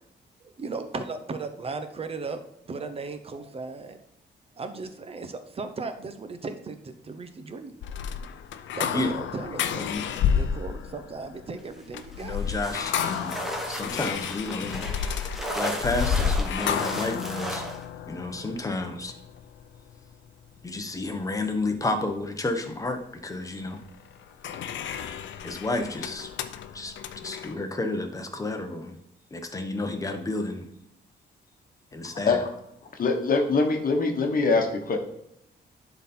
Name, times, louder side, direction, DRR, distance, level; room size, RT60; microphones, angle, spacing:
voice 1, 0.4-2.4 2.7-4.0 4.6-7.7 8.7-9.9 10.4-12.4, right 4 dB, 30° right, 9 dB, 0.8 m, -36 dB
sound 1, 7.8-20.1 23.8-27.5, left 8 dB, 85° left, 0.6 m, -31 dB
sound 2, 12.1-17.9, right 1 dB, ahead, 1.2 m, -35 dB
voice 2, 12.2-13.3 13.7-14.9 15.5-17.7 18.1-19.1 20.6-23.8 25.2-26.3 26.7-26.9 27.2-29.0 29.3-30.6 31.9-32.4, left 2 dB, 20° left, 5 dB, 1.0 m, -31 dB
voice 3, 32.9-35.0, left 3 dB, 50° left, 3 dB, 1.2 m, -23 dB
11.0 x 4.0 x 4.4 m, 0.78 s
cardioid pair, 135°, 19 cm